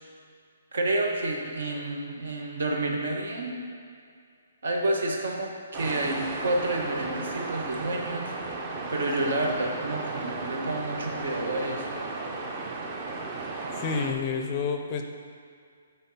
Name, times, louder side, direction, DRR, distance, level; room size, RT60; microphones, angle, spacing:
voice 1, 0.7-3.5 4.6-8.3 8.9-11.9, right 2 dB, 75° right, 0 dB, 1.4 m, -29 dB
sound 1, 5.7-14.1, right 3 dB, 20° right, 0.6 m, -35 dB
voice 2, 13.8-15.0, left 5 dB, 25° left, 5 dB, 0.4 m, -29 dB
8.7 x 3.6 x 5.7 m, 2.2 s
hypercardioid pair, 170°, 0 cm